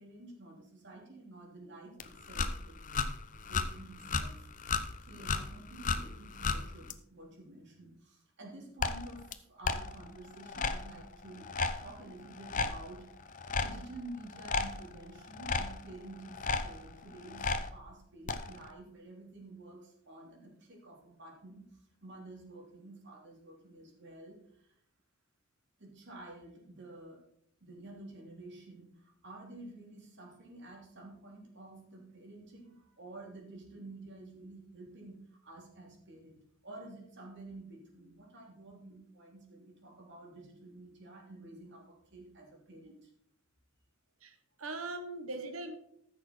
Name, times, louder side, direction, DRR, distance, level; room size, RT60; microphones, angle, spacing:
voice 1, 0.0-2.8 3.3-4.5 5.0-13.1 13.5-24.7 25.8-27.2 27.6-43.1, right 2 dB, 60° right, 0 dB, 3.1 m, -50 dB
sound 1, 2.0-6.9 8.8-9.3 9.6-17.7 18.3-18.7, left 4 dB, 40° left, 0.8 m, -35 dB
voice 2, 44.2-45.8, right 2 dB, 85° right, 8 dB, 1.4 m, -40 dB
14.0 x 6.6 x 4.5 m, 0.71 s
head